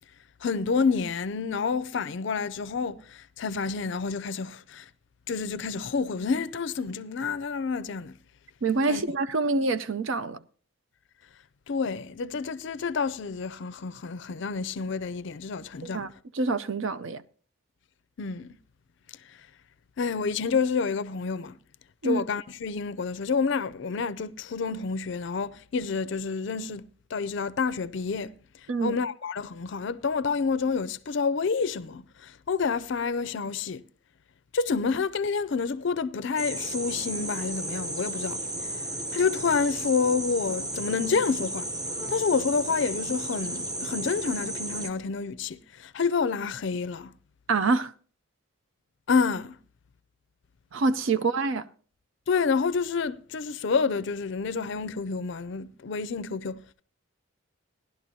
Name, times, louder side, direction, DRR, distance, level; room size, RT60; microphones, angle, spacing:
voice 1, 0.4-4.9 5.3-8.2 8.9-9.0 11.7-16.1 18.2-18.6 19.3-19.4 20.0-21.6 22.0-26.8 27.1-28.3 28.8-33.8 34.5-38.7 39.1-41.7 42.1-47.1 49.1-49.6 52.3-56.8, left 5 dB, 55° left, 0.4 m, -28 dB
voice 2, 8.6-10.4 15.8-16.1 16.3-17.2 22.0-22.2 28.7-29.0 47.5-47.9 50.7-51.6, right 3 dB, 65° right, 0.5 m, -26 dB
sound 1, 36.4-44.9, right 1 dB, 20° right, 0.8 m, -34 dB
17.5 x 11.5 x 2.7 m
head